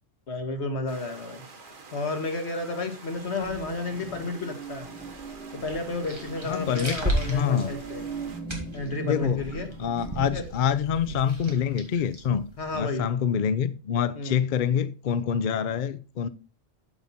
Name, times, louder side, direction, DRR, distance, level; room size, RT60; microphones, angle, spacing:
voice 1, 0.3-1.4 1.9-4.9 5.5-8.0 8.7-9.7 10.3-10.4 12.6-13.1 14.2-14.4, left 2 dB, 80° left, 1.8 m, -32 dB
sound 1, 0.9-8.4, right 3 dB, 50° right, 1.3 m, -48 dB
sound 2, 3.1-10.4, right 3 dB, 15° left, 5.0 m, -40 dB
sound 3, 5.5-12.8, right 1 dB, 25° right, 2.3 m, -36 dB
voice 2, 6.5-7.0 7.2-7.7 9.0-9.5 9.8-12.5 12.7-16.3, left 8 dB, 55° left, 0.6 m, -26 dB
8.0 x 7.2 x 4.1 m
omnidirectional pair, 1.1 m